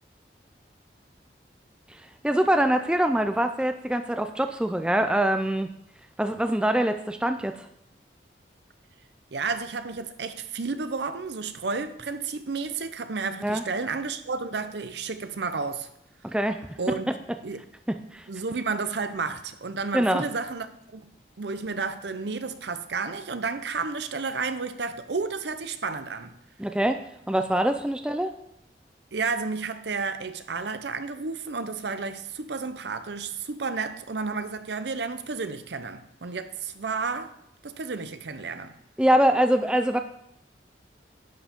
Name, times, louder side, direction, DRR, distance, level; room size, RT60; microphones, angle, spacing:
voice 1, 1.9-5.7 6.2-7.7 13.4-13.6 16.2-17.2 17.9-18.3 19.9-20.2 26.6-28.3 39.0-40.0, right 1 dB, 5° right, 0.4 m, -24 dB
voice 2, 9.3-15.9 16.8-17.0 17.4-17.6 18.3-21.0 21.4-26.3 29.1-37.4 37.6-38.8, right 4 dB, 75° right, 0.7 m, -31 dB
10.5 x 7.4 x 3.6 m
head